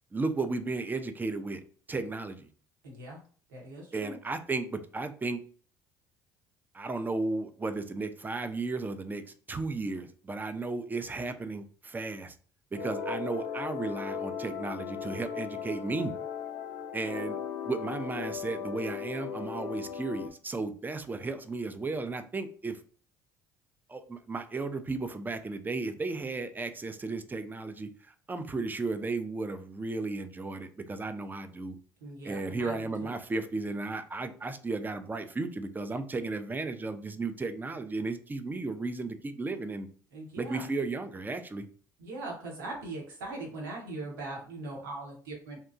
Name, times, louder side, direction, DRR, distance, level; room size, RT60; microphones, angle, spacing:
voice 1, 0.1-1.6 1.9-2.5 3.9-5.4 6.7-12.3 12.7-16.1 16.9-17.4 17.6-22.8 23.9-31.8 32.2-39.9 40.4-41.7, right 3 dB, 15° right, 9 dB, 0.4 m, -34 dB
voice 2, 2.8-3.2 3.5-4.2 32.0-33.1 40.1-40.6 42.0-45.6, right 2 dB, 80° right, -1 dB, 1.1 m, -40 dB
sound 1, 12.7-20.3, left 7 dB, 75° left, 0.4 m, -37 dB
2.8 x 2.2 x 2.5 m, 0.43 s
hypercardioid pair, 60°, 11 cm